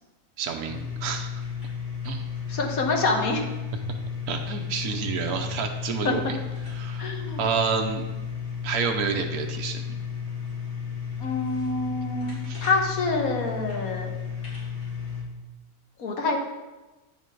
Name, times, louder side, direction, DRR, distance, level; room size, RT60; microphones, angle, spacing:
voice 1, 0.4-1.3 2.0-2.2 4.3-6.4 6.8-7.1 7.4-8.0 8.6-10.0 12.5-12.7, right 6 dB, 80° right, 3 dB, 1.3 m, -29 dB
sound 1, 0.6-15.2, left 7 dB, 30° left, 2.9 m, -33 dB
voice 2, 2.5-3.4 6.0-6.1 7.0-7.4 11.2-14.1 16.0-16.4, left 3 dB, 65° left, 2 dB, 1.7 m, -26 dB
9.7 x 5.8 x 4.6 m, 1.1 s
omnidirectional pair, 1.6 m